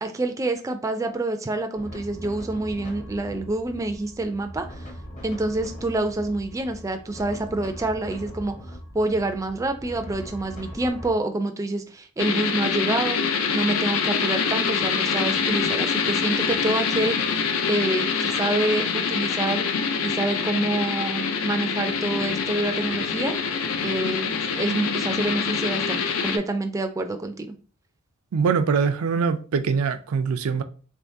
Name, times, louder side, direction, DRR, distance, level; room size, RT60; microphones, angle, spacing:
voice 1, 0.0-4.7 5.2-8.5 8.9-13.2 13.5-17.2 17.7-19.7 20.0-23.3 23.8-27.6, right 2 dB, 15° right, 0.3 m, -27 dB
sound 1, 1.7-11.1, equal, 35° left, 0.7 m, -40 dB
sound 2, 12.2-26.4, left 6 dB, 80° left, 0.5 m, -25 dB
voice 2, 28.3-30.6, right 5 dB, 90° right, 0.4 m, -23 dB
3.4 x 3.1 x 2.6 m
head